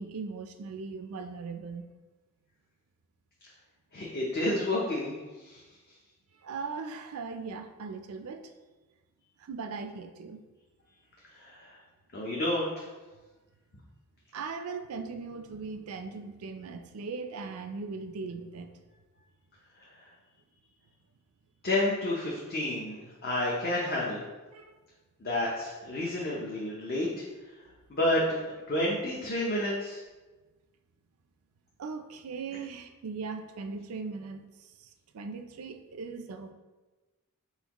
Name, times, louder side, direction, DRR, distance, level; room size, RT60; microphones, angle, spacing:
voice 1, 0.0-1.8 6.4-8.5 9.4-10.4 14.3-18.7 24.5-24.7 31.8-34.4 34.8-36.5, right 4 dB, 90° right, 7 dB, 0.4 m, -39 dB
voice 2, 3.9-5.6 11.4-11.8 12.1-12.9 21.6-24.2 25.2-27.2 27.9-30.0, left 1 dB, 45° left, -4 dB, 0.6 m, -30 dB
4.4 x 4.1 x 2.9 m, 1.2 s
head